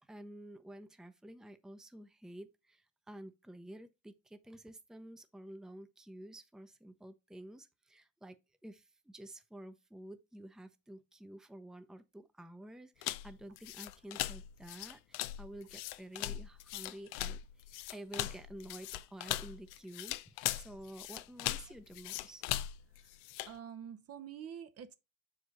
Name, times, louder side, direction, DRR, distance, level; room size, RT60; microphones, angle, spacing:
voice 1, 0.0-22.4, right 1 dB, ahead, 0.7 m, -51 dB
sound 1, 13.0-23.6, left 15 dB, 80° left, 0.5 m, -39 dB
voice 2, 23.5-24.9, right 8 dB, 45° right, 0.8 m, -47 dB
6.1 x 4.9 x 4.0 m
hypercardioid pair, 70°, 35 cm